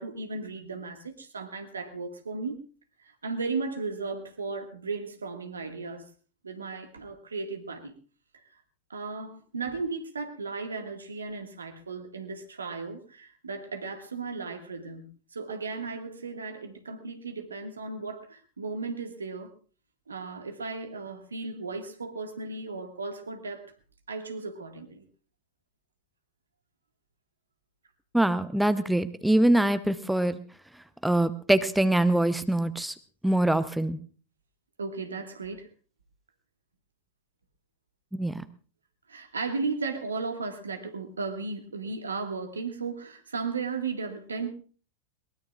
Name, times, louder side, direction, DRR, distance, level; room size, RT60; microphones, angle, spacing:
voice 1, 0.0-2.6 3.2-6.0 6.4-7.9 8.9-19.5 20.1-23.7 24.1-25.0 34.8-35.7 39.1-44.5, right 4 dB, 75° right, 6 dB, 1.8 m, -35 dB
voice 2, 28.1-30.4 31.0-32.9 33.2-34.0 38.1-38.3, right 1 dB, 5° right, 12 dB, 0.7 m, -24 dB
22.0 x 20.0 x 2.4 m, 0.38 s
figure-of-eight pair, 90°, 0 cm